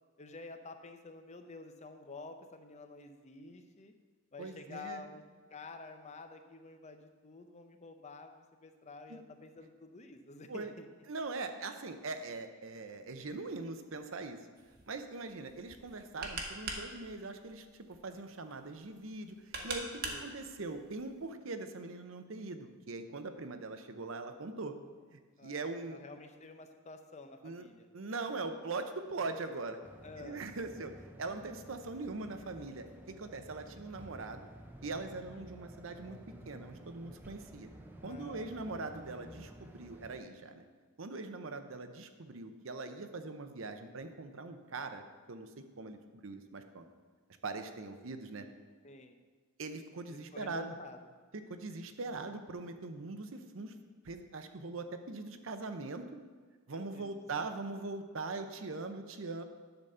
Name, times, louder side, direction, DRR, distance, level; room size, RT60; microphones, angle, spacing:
voice 1, 0.2-3.9 4.3-5.2 5.5-10.9 20.0-20.4 25.4-27.9 30.0-30.4 38.1-38.6 48.8-49.2 50.1-51.0 56.7-57.4, left 3 dB, 35° left, 7 dB, 0.7 m, -50 dB
voice 2, 4.4-5.0 9.1-9.2 10.5-10.7 11.1-14.4 14.9-24.8 25.1-26.0 27.4-27.7 27.9-29.8 30.2-34.5 34.8-36.2 36.4-37.7 38.0-40.6 41.0-46.8 47.4-48.5 49.6-50.7 51.3-53.7 54.0-56.1 56.7-59.4, right 3 dB, 70° right, 8 dB, 0.7 m, -41 dB
sound 1, 14.6-21.3, right 3 dB, 50° right, 1.2 m, -44 dB
sound 2, 29.8-40.2, right 1 dB, 10° right, 0.7 m, -52 dB
10.5 x 4.1 x 6.7 m, 1.5 s
head